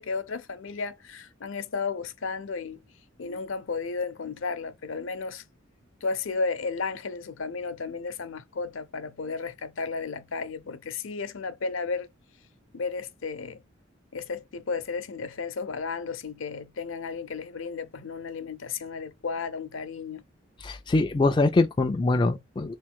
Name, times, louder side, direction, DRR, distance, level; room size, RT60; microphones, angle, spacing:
voice 1, 0.0-2.8 3.2-5.4 6.0-12.1 12.7-13.6 14.1-20.2, left 4 dB, 75° left, 0.6 m, -33 dB
voice 2, 20.6-22.8, left 2 dB, 25° left, 0.3 m, -23 dB
3.1 x 3.1 x 3.5 m
head